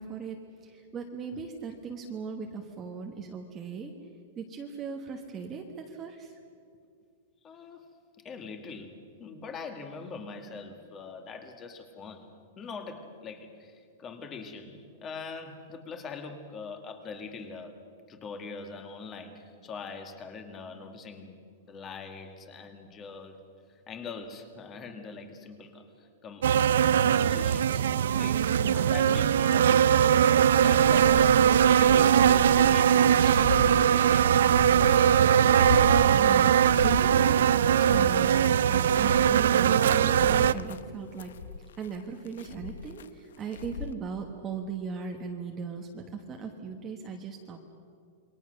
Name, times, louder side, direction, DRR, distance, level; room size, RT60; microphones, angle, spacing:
voice 1, 0.0-3.9 4.4-6.3 34.9-41.4 41.8-47.6, right 5 dB, 15° right, 2 dB, 1.3 m, -39 dB
voice 2, 7.4-7.9 8.2-12.3 12.6-17.8 18.1-21.4 21.7-23.4 23.7-26.6 27.1-27.9 28.1-34.4, left 4 dB, 15° left, 7 dB, 1.9 m, -43 dB
sound 1, 26.4-40.5, right 9 dB, 80° right, 0.6 m, -21 dB
sound 2, 30.7-43.9, left 8 dB, 85° left, 0.9 m, -38 dB
28.0 x 22.5 x 6.5 m, 2.4 s
supercardioid pair, 175°, 0 cm